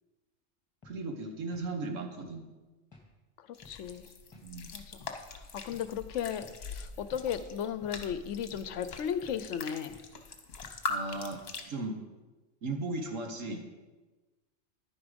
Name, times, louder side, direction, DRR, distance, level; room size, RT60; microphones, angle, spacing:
sound 1, 0.8-1.0 1.5-1.7 2.2-2.4 2.9-3.1 3.6-3.8 4.3-4.5 5.0-5.2 5.7-5.9 6.4-6.6 7.1-7.3 7.8-8.0 8.5-8.7 9.2-9.4 9.9-10.1 10.6-10.8 11.3-11.5, left 3 dB, 20° left, 1.6 m, -55 dB
voice 1, 0.8-2.5 4.4-4.7 10.9-11.4 11.7-12.0 12.6-13.7, right 2 dB, 75° right, 4 dB, 1.6 m, -36 dB
voice 2, 3.4-4.1 4.7-5.1 5.5-9.9, left 8 dB, 70° left, 13 dB, 0.9 m, -35 dB
sound 2, 3.5-11.6, left 3 dB, 55° left, 1.2 m, -42 dB
10.5 x 9.7 x 5.1 m, 1.2 s
omnidirectional pair, 1.3 m